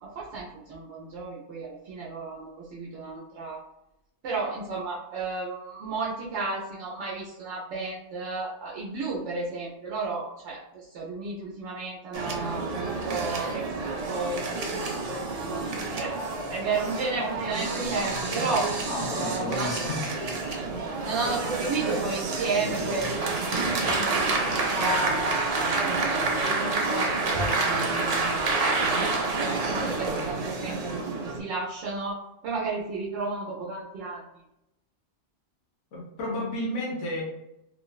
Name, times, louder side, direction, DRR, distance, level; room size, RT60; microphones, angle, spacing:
voice 1, 0.0-3.6 4.2-10.6 10.9-14.4 15.4-16.2 16.5-18.7 19.1-19.8 21.0-24.3 24.7-26.0 26.4-28.9 29.6-34.2, right 3 dB, 75° right, -5 dB, 0.9 m, -33 dB
sound 1, 12.1-31.4, right 3 dB, 60° right, 0.4 m, -28 dB
voice 2, 18.9-20.0 35.9-37.2, left 1 dB, 85° left, -3 dB, 1.0 m, -32 dB
3.1 x 2.0 x 2.3 m, 0.88 s
omnidirectional pair, 1.2 m